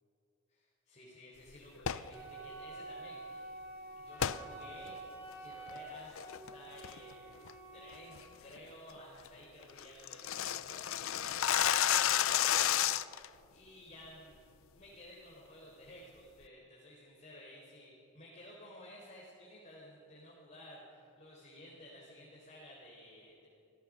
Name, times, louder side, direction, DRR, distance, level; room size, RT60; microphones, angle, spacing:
voice 1, 0.5-3.5 3.9-5.0 5.4-13.2 13.5-14.4 14.7-23.5, left 1 dB, 30° left, -4 dB, 4.2 m, -54 dB
sound 1, 1.8-2.1 4.2-4.4 4.9-5.0 5.5-5.8 6.2-6.5 6.8-7.1 7.5-7.6 8.0-8.2 8.6-8.7 9.0-9.1 9.3-9.4 9.6-13.3, left 10 dB, 65° left, 0.6 m, -31 dB
Wind instrument woodwind instrument, 2.1-8.1, right 2 dB, 10° right, 5.1 m, -48 dB
28.0 x 17.5 x 6.4 m, 2.6 s
head